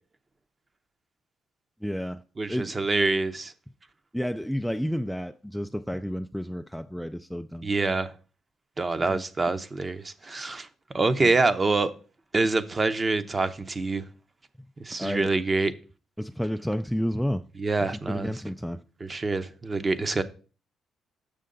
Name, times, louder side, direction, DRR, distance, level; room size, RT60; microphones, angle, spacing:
voice 1, 1.8-2.8 4.1-7.7 9.0-9.2 11.2-11.3 15.0-15.3 16.2-17.4 17.8-18.8, equal, ahead, 0.3 m, -31 dB
voice 2, 2.4-3.5 7.6-8.1 8.8-10.7 10.9-11.9 12.3-14.0 14.8-15.7 17.6-18.3 19.0-20.2, right 3 dB, 30° right, 0.7 m, -26 dB
6.6 x 6.3 x 3.8 m
cardioid pair, 90°, 0 cm